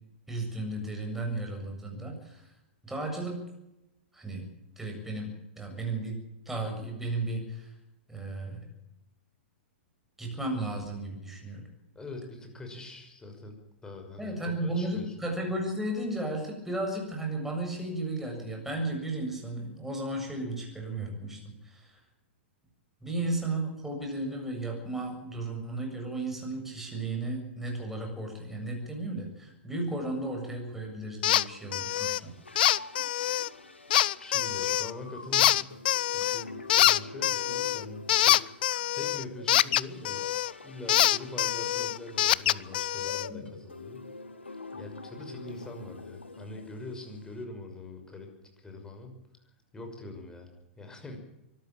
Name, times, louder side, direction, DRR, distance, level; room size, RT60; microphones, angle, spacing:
voice 1, 0.3-2.5 2.8-3.4 4.1-4.4 4.8-6.2 6.5-7.7 8.1-8.7 10.2-11.6 14.2-22.0 23.0-32.3 43.3-43.5, right 2 dB, 5° right, 1 dB, 7.5 m, -34 dB
voice 2, 11.9-13.6 13.8-15.1 34.2-35.7 36.1-38.4 38.9-40.3 40.6-44.1 44.7-49.2 49.7-51.2, left 2 dB, 10° left, 4 dB, 6.2 m, -43 dB
sound 1, 31.2-31.4 31.7-32.2 32.6-33.5 33.9-34.9 35.3-36.4 36.7-40.5 40.9-43.3, left 13 dB, 55° left, 0.7 m, -25 dB
sound 2, 31.5-47.4, left 3 dB, 85° left, 2.5 m, -47 dB
24.0 x 13.5 x 9.0 m, 0.91 s
figure-of-eight pair, 110°, 6 cm